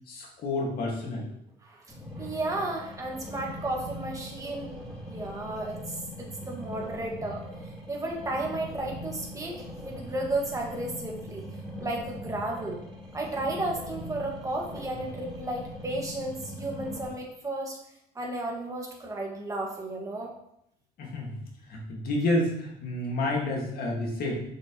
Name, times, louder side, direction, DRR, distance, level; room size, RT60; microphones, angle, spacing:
voice 1, 0.1-1.3 21.0-21.4 21.7-24.3, left 1 dB, 65° left, -1 dB, 2.0 m, -29 dB
voice 2, 1.6-4.7 5.1-7.4 7.9-11.5 11.8-12.8 13.1-17.8 18.2-20.3, right 2 dB, 20° right, -1 dB, 1.8 m, -33 dB
sound 1, 1.9-17.1, left 1 dB, ahead, 2.8 m, -41 dB
6.6 x 5.7 x 3.1 m, 0.76 s
cardioid pair, 110°, 17 cm